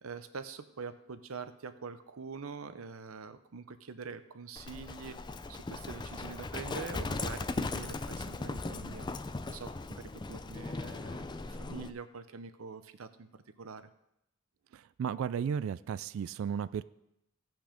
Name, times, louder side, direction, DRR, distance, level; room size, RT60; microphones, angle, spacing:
voice 1, 0.0-5.2 5.5-9.1 9.5-13.3 13.6-13.9, right 5 dB, 90° right, 11 dB, 0.7 m, -45 dB
Livestock farm animals working animals, 4.6-11.9, left 3 dB, 20° left, 0.4 m, -38 dB
voice 2, 14.7-16.8, right 7 dB, 70° right, 17 dB, 0.3 m, -34 dB
16.0 x 6.0 x 5.1 m, 0.85 s
head